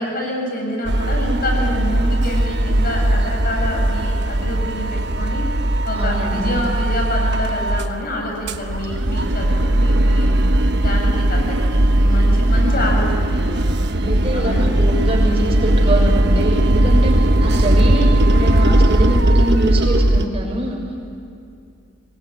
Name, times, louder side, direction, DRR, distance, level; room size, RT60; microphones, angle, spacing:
voice 1, 0.0-5.4 5.8-10.3 10.8-14.8, left 1 dB, 50° left, 0 dB, 8.0 m, -27 dB
sound 1, 0.8-7.9 8.3-20.3, right 1 dB, 60° right, 1.2 m, -17 dB
voice 2, 6.0-6.5 12.6-12.9 14.0-17.1 17.4-20.8, right 1 dB, 30° right, 0 dB, 6.4 m, -24 dB
25.5 x 20.5 x 10.0 m, 2.5 s
head